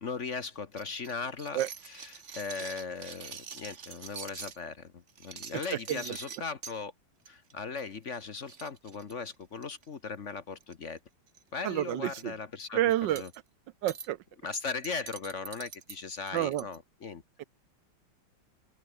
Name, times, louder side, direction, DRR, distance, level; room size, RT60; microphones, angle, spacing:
voice 1, 0.0-6.9 7.3-11.0 11.5-12.8 13.1-13.3 14.4-17.2, left 5 dB, 45° left, 1.2 m, -38 dB
sound 1, 0.8-4.6 5.1-6.8 7.2-7.5 7.8-7.9 8.2-8.3 8.5-9.8 10.6-11.0 11.3-11.4 11.8-12.2 13.2-13.4 13.9-14.1 14.5-16.8, right 6 dB, 40° right, 1.5 m, -45 dB
voice 2, 11.6-12.3 12.7-13.2 13.8-14.2 16.3-16.6 17.4-17.5, right 13 dB, 70° right, 1.2 m, -29 dB
open air
omnidirectional pair, 2.3 m